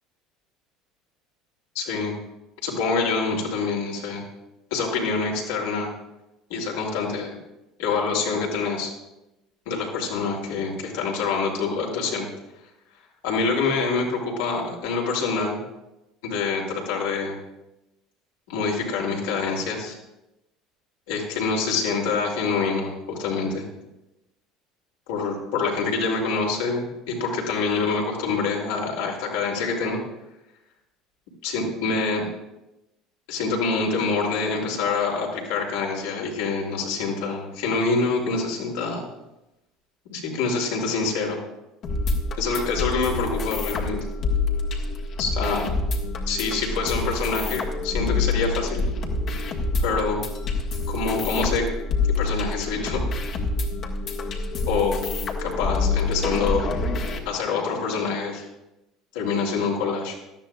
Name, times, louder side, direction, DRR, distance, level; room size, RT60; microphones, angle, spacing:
voice 1, 1.7-2.1 2.6-4.2 4.7-5.9 6.5-7.3 7.8-8.9 9.7-12.3 13.2-15.6 16.2-17.4 18.5-19.9 21.1-23.6 25.1-30.0 31.4-32.3 33.3-39.0 40.0-41.4 42.4-44.0 45.2-45.7 46.3-48.8 49.8-50.2 50.9-51.7 52.2-53.0 54.7-55.0 55.4-56.7 57.2-58.4 59.1-60.2, left 4 dB, 75° left, -1 dB, 3.0 m, -26 dB
sound 1, 41.8-57.2, left 3 dB, 50° left, 1.8 m, -27 dB
18.0 x 12.5 x 2.4 m, 0.94 s
hypercardioid pair, 70°, 0 cm